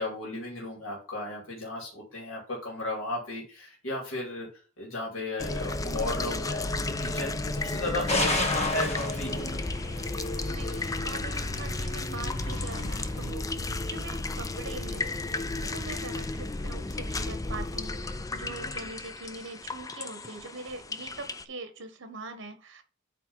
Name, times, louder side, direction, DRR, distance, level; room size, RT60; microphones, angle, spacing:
voice 1, 0.0-4.5 4.8-9.6 15.0-15.1, left 2 dB, 85° left, -2 dB, 2.5 m, -35 dB
sound 1, 5.4-21.4, left 2 dB, 15° left, 0.4 m, -33 dB
sound 2, 8.1-13.3, left 1 dB, 35° left, 1.3 m, -33 dB
voice 2, 10.5-13.5 13.9-15.1 15.5-22.8, right 3 dB, 65° right, 8 dB, 1.3 m, -42 dB
8.6 x 3.3 x 5.5 m, 0.37 s
head